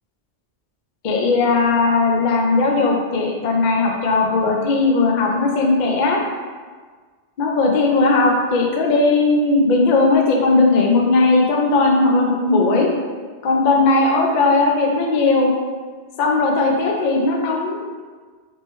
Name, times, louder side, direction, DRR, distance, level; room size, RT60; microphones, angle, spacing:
voice 1, 1.0-6.2 7.4-12.9 13.4-15.5 16.2-17.9, left 3 dB, 55° left, 0 dB, 0.5 m, -17 dB
3.5 x 3.1 x 3.0 m, 1.5 s
omnidirectional pair, 1.1 m